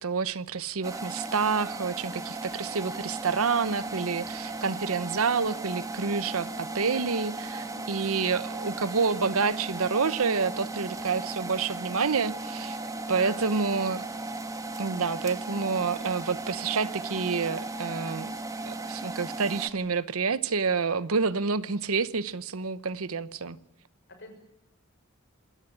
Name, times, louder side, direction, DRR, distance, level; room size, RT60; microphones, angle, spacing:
voice 1, 0.0-12.8 13.1-14.0 14.8-18.3 18.6-23.6, right 5 dB, 75° right, 0.9 m, -28 dB
sound 1, 0.8-19.7, right 2 dB, 15° right, 1.4 m, -36 dB
voice 2, 7.5-7.9 12.8-13.4 24.2-24.3, left 2 dB, 55° left, 6.7 m, -45 dB
26.5 x 14.0 x 10.0 m
head